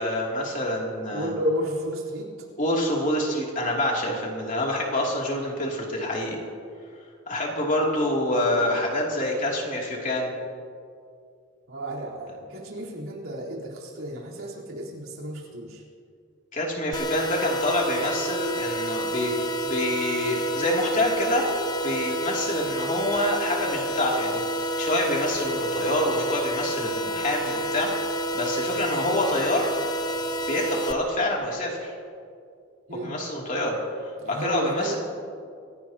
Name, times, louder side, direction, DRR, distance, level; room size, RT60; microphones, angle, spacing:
voice 1, 0.0-1.3 2.6-6.4 7.3-10.3 16.5-21.5 21.8-27.9 28.3-29.7 30.5-31.9 32.9-33.8 34.3-35.0, left 1 dB, 40° left, -2 dB, 2.9 m, -26 dB
voice 2, 1.1-2.3 11.7-15.8 32.9-33.1 34.2-35.0, equal, 90° right, -4 dB, 4.0 m, -32 dB
sound 1, 16.9-30.9, right 1 dB, 20° left, 0.6 m, -29 dB
26.0 x 16.5 x 3.0 m, 2.3 s
head